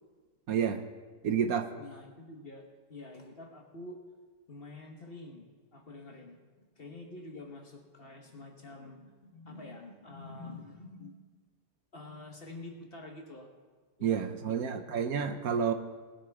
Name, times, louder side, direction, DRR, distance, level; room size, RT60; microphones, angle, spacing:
voice 1, 0.5-0.8 1.2-1.7 14.0-15.7, right 7 dB, 70° right, 8 dB, 1.1 m, -29 dB
voice 2, 1.8-4.0 4.5-11.1 11.9-13.5 14.0-14.8, left 2 dB, 40° left, 2 dB, 1.3 m, -47 dB
19.0 x 9.5 x 3.5 m, 1.4 s
omnidirectional pair, 1.8 m